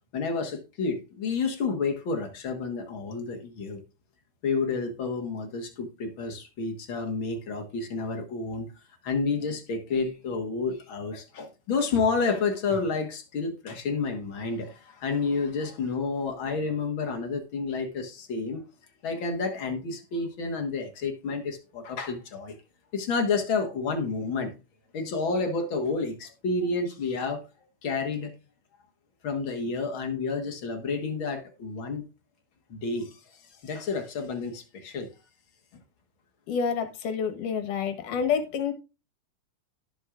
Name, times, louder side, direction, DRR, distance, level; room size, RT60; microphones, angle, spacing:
voice 1, 0.1-3.8 4.4-8.7 9.0-18.6 19.0-22.6 22.9-24.6 24.9-27.4 27.8-28.3 29.2-32.0 32.7-35.1, left 4 dB, 50° left, 1.7 m, -30 dB
voice 2, 36.5-38.7, left 6 dB, 75° left, 2.8 m, -28 dB
17.5 x 6.3 x 2.5 m
omnidirectional pair, 3.7 m